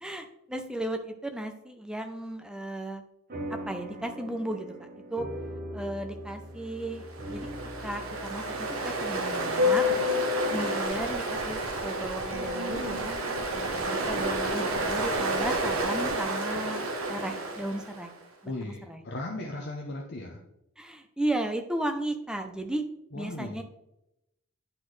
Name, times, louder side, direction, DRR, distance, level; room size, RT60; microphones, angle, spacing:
voice 1, 0.0-3.0 3.5-5.3 5.7-7.5 7.8-9.9 10.5-13.2 13.5-16.8 17.1-18.1 18.4-19.0 20.8-22.8 23.1-23.6, right 1 dB, 5° right, 6 dB, 0.4 m, -35 dB
sound 1, 3.3-12.1, right 1 dB, 40° right, 0.9 m, -42 dB
Ocean, 7.0-18.1, equal, 70° right, 1.1 m, -29 dB
sound 2, 11.0-16.2, left 1 dB, 75° left, 1.1 m, -44 dB
voice 2, 18.4-20.4 23.1-23.6, left 2 dB, 50° left, 0 dB, 0.7 m, -37 dB
9.8 x 4.2 x 3.2 m, 0.87 s
head